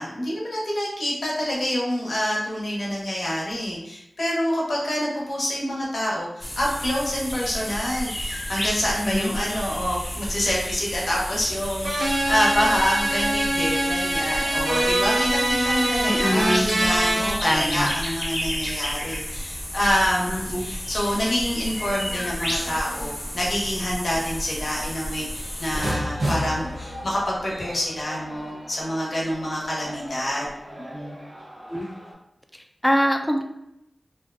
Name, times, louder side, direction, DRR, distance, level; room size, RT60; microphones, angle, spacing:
voice 1, 0.0-31.2, equal, 70° left, -4 dB, 0.7 m, -27 dB
sound 1, 6.4-25.9, equal, 35° left, 0.7 m, -32 dB
sound 2, 11.8-17.3, right 1 dB, 60° right, 0.5 m, -23 dB
voice 2, 16.1-16.7 17.4-17.9 20.3-20.6 31.7-31.9 32.5-33.4, equal, 10° left, 4 dB, 0.4 m, -24 dB
sound 3, 25.7-32.1, equal, 90° right, 1.1 m, -33 dB
2.5 x 2.2 x 2.4 m, 0.83 s
cardioid pair, 40°, 0 cm